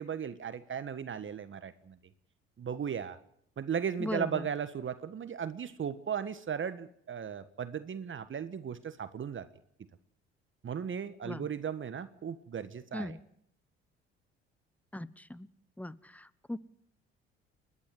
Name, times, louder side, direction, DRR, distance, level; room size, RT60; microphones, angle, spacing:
voice 1, 0.0-2.0 2.6-3.2 3.6-9.5 10.6-13.2, right 7 dB, 40° right, 12 dB, 1.5 m, -36 dB
voice 2, 4.0-4.5 11.2-11.5 12.9-13.2 14.9-15.5 15.8-16.6, left 1 dB, 5° left, 19 dB, 1.1 m, -39 dB
30.0 x 11.5 x 7.8 m, 0.72 s
hypercardioid pair, 55°, 32 cm